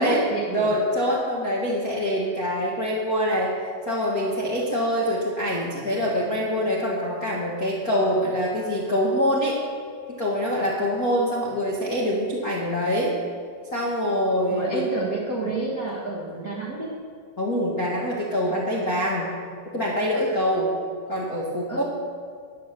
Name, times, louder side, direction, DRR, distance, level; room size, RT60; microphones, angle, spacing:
voice 1, 0.0-0.7 14.5-16.9 21.7-21.8, right 2 dB, 40° right, -5 dB, 1.3 m, -29 dB
voice 2, 0.5-3.5 3.8-9.6 10.2-13.2 13.7-14.9 17.4-19.4 19.7-20.7 21.1-21.8, equal, 45° left, -5 dB, 1.2 m, -24 dB
10.5 x 10.5 x 7.6 m, 2.2 s
omnidirectional pair, 4.1 m